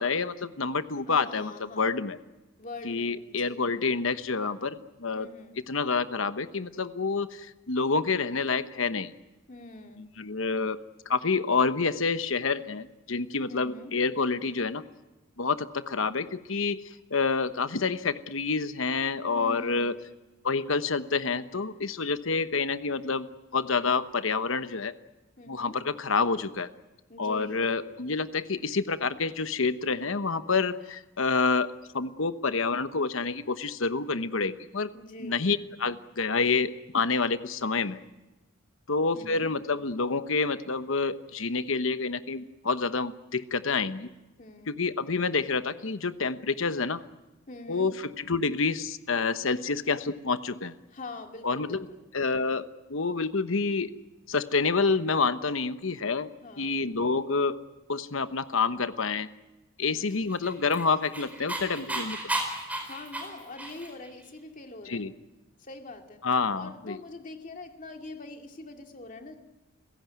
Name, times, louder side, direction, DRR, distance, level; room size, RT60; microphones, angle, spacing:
voice 1, 0.0-2.2 2.8-5.3 5.7-9.1 10.0-10.8 11.1-14.8 15.4-16.8 17.1-20.0 20.4-23.3 23.5-24.9 25.5-26.7 27.2-34.9 35.2-38.0 38.9-44.1 44.7-47.0 47.7-47.9 48.3-50.7 51.4-51.8 52.1-53.9 54.3-57.6 57.9-59.3 59.8-62.3 64.9-65.1 66.2-67.0, left 4 dB, 65° left, 12 dB, 1.1 m, -28 dB
voice 2, 1.1-1.9 2.6-3.7 5.1-5.6 9.5-10.1 13.5-13.9 19.3-19.9 25.4-25.8 27.1-27.7 34.9-35.4 39.1-39.5 44.4-44.8 47.5-47.9 50.9-52.1 56.4-56.8 59.8-60.3 62.8-65.1 65.6-66.2 66.6-69.4, left 2 dB, 40° left, 4 dB, 2.5 m, -44 dB
Dog, 60.3-64.1, right 1 dB, 5° right, 4.5 m, -34 dB
29.0 x 16.5 x 9.4 m, 1.0 s
head